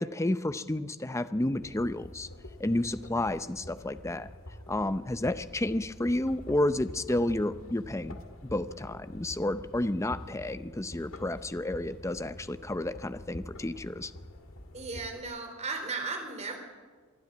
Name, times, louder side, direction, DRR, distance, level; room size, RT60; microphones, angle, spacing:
voice 1, 0.0-2.3 2.6-4.3 4.7-8.2 8.4-14.1, left 1 dB, 15° left, 12 dB, 0.6 m, -31 dB
sound 1, 1.5-15.2, left 1 dB, 70° left, 1.9 m, -47 dB
voice 2, 14.7-16.6, right 4 dB, 30° right, 4 dB, 3.6 m, -36 dB
23.0 x 12.5 x 9.5 m, 1.5 s
head